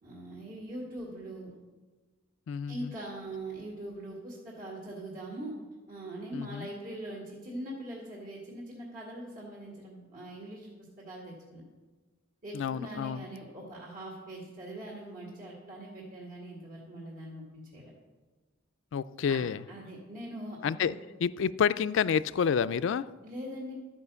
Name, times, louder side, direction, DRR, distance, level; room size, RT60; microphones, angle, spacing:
voice 1, 0.0-1.6 2.7-5.6 5.9-11.6 12.4-17.9 19.3-20.9 23.2-23.7, right 1 dB, 50° right, -3 dB, 2.0 m, -42 dB
voice 2, 2.5-2.9 6.3-6.7 12.5-13.3 18.9-19.6 20.6-20.9 21.2-23.1, left 7 dB, 65° left, 16 dB, 0.3 m, -29 dB
12.0 x 5.0 x 6.8 m, 1.3 s
head